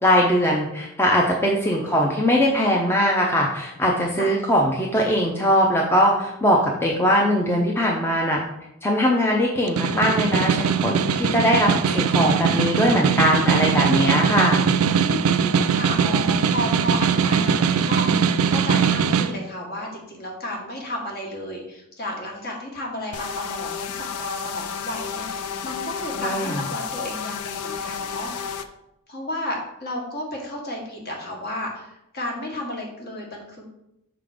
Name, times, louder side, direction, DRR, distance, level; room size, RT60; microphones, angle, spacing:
voice 1, 0.0-8.4 8.8-14.7 26.2-26.6, equal, 10° left, -1 dB, 0.6 m, -21 dB
voice 2, 1.6-2.1 4.1-4.3 11.3-11.8 14.9-28.7 29.1-33.7, left 1 dB, 45° left, 0 dB, 1.5 m, -33 dB
Snare drum, 9.6-19.3, right 6 dB, 65° right, 0.3 m, -21 dB
sound 1, 23.1-28.6, left 7 dB, 85° left, 0.5 m, -31 dB
5.7 x 3.8 x 4.9 m, 0.83 s
head